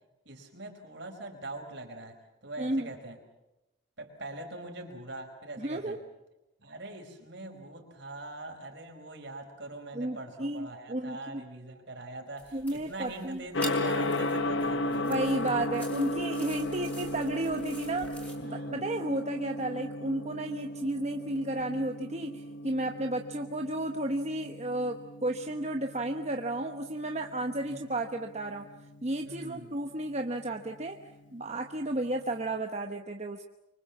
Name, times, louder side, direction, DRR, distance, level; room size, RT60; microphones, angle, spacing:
voice 1, 0.2-3.2 4.0-6.0 6.6-15.2 15.4-15.5 18.4-18.8 27.6-27.9 29.2-29.7, right 2 dB, 65° right, 3 dB, 5.0 m, -43 dB
voice 2, 2.6-2.9 5.6-6.0 9.9-11.4 12.5-13.4 14.9-28.6 29.0-31.0 31.3-33.4, right 1 dB, 35° right, 4 dB, 1.1 m, -33 dB
sound 1, 12.4-18.4, equal, 10° left, 5.0 m, -47 dB
Gong, 13.5-32.5, left 1 dB, 75° left, 1.4 m, -36 dB
25.0 x 24.5 x 7.3 m, 0.96 s
head